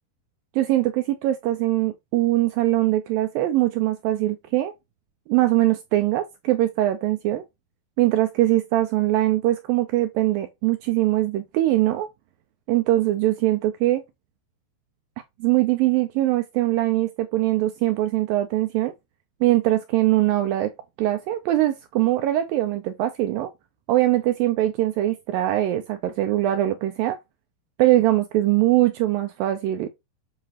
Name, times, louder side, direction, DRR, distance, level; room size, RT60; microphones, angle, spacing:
voice 1, 0.6-4.7 5.3-7.4 8.0-12.1 12.7-14.0 15.4-18.9 19.4-20.7 21.0-23.5 23.9-27.2 27.8-29.9, right 15 dB, 80° right, 2.1 m, -22 dB
8.4 x 2.8 x 5.7 m
omnidirectional pair, 4.6 m